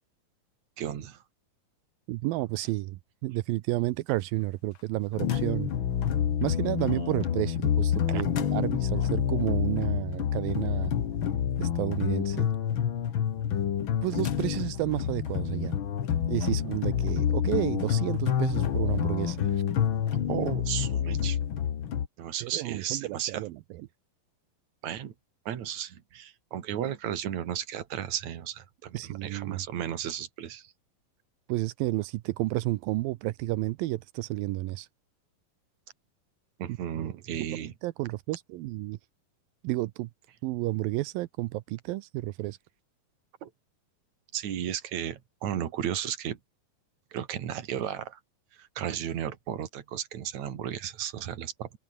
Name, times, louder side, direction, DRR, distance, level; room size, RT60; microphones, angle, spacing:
voice 1, 0.8-1.2 6.9-7.1 8.1-8.2 20.3-21.4 22.2-23.5 24.8-25.1 25.5-30.7 36.6-37.7 43.4-43.5 44.3-46.4 47.1-48.2 48.6-51.8, right 10 dB, 55° right, 3.1 m, -34 dB
voice 2, 2.1-5.7 6.4-10.9 11.6-12.5 14.0-15.8 16.3-19.6 22.4-23.9 28.9-29.6 31.5-34.9 36.7-37.1 37.8-39.0 39.6-40.1 40.4-42.6, right 18 dB, 85° right, 2.5 m, -31 dB
sound 1, 5.1-22.1, left 9 dB, 55° left, 1.4 m, -28 dB
open air
omnidirectional pair, 4.2 m